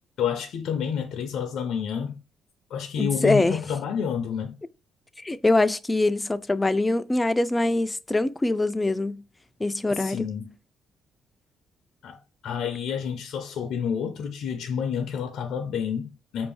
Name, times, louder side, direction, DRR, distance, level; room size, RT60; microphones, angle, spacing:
voice 1, 0.2-2.2 2.7-4.6 9.9-10.5 12.0-16.5, left 7 dB, 75° left, 0.5 m, -29 dB
voice 2, 3.0-3.6 5.2-9.2 9.6-10.2, left 2 dB, 15° left, 0.4 m, -23 dB
5.2 x 2.6 x 3.4 m
cardioid pair, 90°, 0 cm